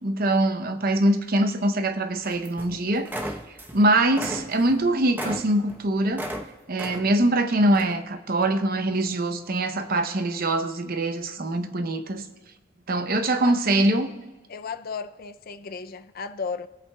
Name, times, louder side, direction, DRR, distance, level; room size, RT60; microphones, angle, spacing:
voice 1, 0.0-3.1 3.7-6.2 6.7-12.2 12.9-14.1, right 1 dB, 50° right, 0.7 m, -23 dB
sound 1, 2.2-2.8 3.0-3.8 4.1-6.4 6.8-7.3 7.7-8.0, equal, 10° right, 0.9 m, -35 dB
voice 2, 14.5-16.7, left 5 dB, 50° left, 0.5 m, -34 dB
23.0 x 8.4 x 2.3 m
head